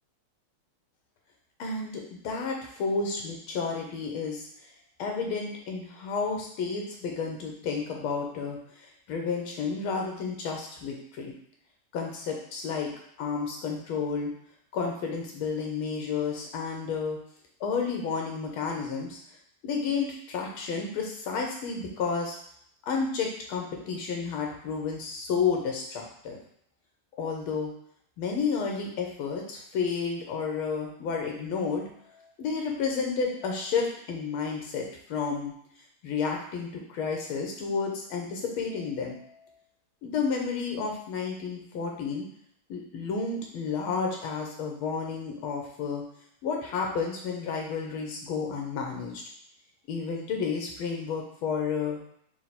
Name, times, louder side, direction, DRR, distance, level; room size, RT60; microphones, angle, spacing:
voice 1, 1.6-4.5 5.0-8.6 9.1-11.3 11.9-12.9 13.2-14.3 14.7-17.2 17.6-19.2 19.6-22.4 22.9-26.4 27.2-27.7 28.2-34.8 35.1-35.5 36.0-39.5 40.0-42.2 42.7-46.0 46.4-49.2 49.9-52.0, left 5 dB, 80° left, 1 dB, 1.7 m, -31 dB
4.5 x 2.1 x 4.2 m, 0.68 s
omnidirectional pair, 2.3 m